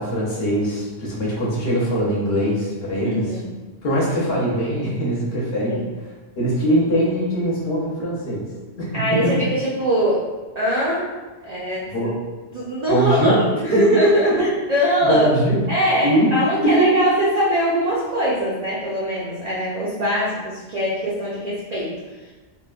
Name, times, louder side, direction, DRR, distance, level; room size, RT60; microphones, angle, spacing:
voice 1, 0.0-3.3 3.8-5.8 6.4-8.4 8.8-9.5 11.9-12.1 12.9-13.4 13.7-13.8 14.2-14.5 15.0-15.6 16.0-16.3 16.6-16.9, right 1 dB, 60° left, -5 dB, 0.9 m, -21 dB
voice 2, 3.0-3.5 5.7-5.9 8.9-10.3 10.6-11.1 11.4-12.1 12.5-15.3 15.7-22.3, equal, 60° right, -7 dB, 0.4 m, -22 dB
3.0 x 2.1 x 2.3 m, 1.3 s
omnidirectional pair, 1.2 m